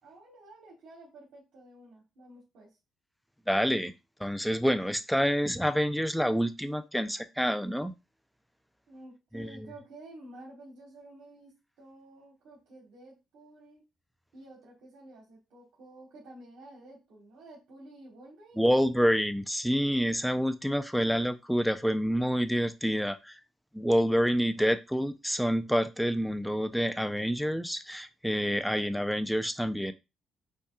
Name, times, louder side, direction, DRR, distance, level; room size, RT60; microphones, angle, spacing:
voice 1, 0.0-2.8 8.9-13.8 14.3-19.2, right 1 dB, 80° right, -4 dB, 1.4 m, -51 dB
voice 2, 3.5-3.9 4.2-7.9 9.3-9.7 18.6-23.4 23.7-29.9, equal, ahead, 9 dB, 0.4 m, -27 dB
5.3 x 2.3 x 2.4 m, 0.25 s
cardioid pair, 90°, 0 cm